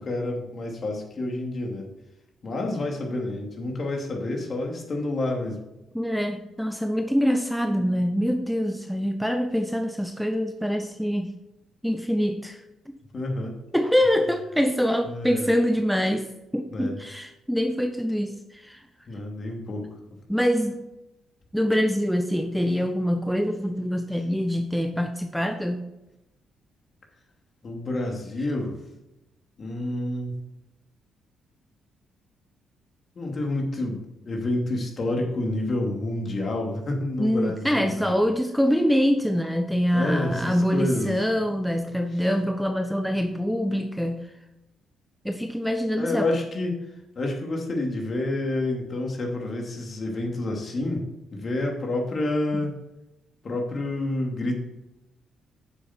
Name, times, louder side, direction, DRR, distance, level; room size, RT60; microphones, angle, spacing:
voice 1, 0.0-1.9 2.4-5.6 13.1-13.6 15.0-15.5 16.7-17.0 19.1-19.9 27.6-28.8 29.6-30.3 33.1-38.1 39.9-41.2 42.1-42.2 46.0-46.8 47.1-51.1 51.3-52.8 53.4-54.5, left 2 dB, 45° left, 1 dB, 2.8 m, -29 dB
voice 2, 5.9-11.3 11.8-13.0 13.7-18.8 20.3-20.8 21.5-25.8 37.2-44.3 45.2-46.3, equal, ahead, 6 dB, 0.8 m, -25 dB
9.3 x 7.5 x 4.5 m, 0.93 s
cardioid pair, 75°, 0 cm